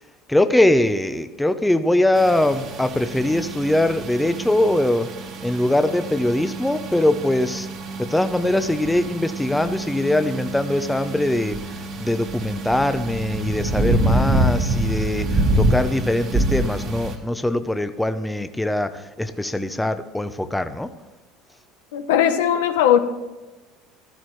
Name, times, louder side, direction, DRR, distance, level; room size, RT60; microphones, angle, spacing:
voice 1, 0.3-5.1 5.4-7.7 8.0-11.6 12.0-20.9, left 1 dB, 5° left, 10 dB, 0.7 m, -22 dB
sound 1, 2.1-17.2, right 1 dB, 55° right, 1.8 m, -26 dB
voice 2, 21.9-23.0, left 10 dB, 90° left, 8 dB, 0.9 m, -18 dB
14.5 x 12.0 x 3.2 m, 1.2 s
supercardioid pair, 110°, 0 cm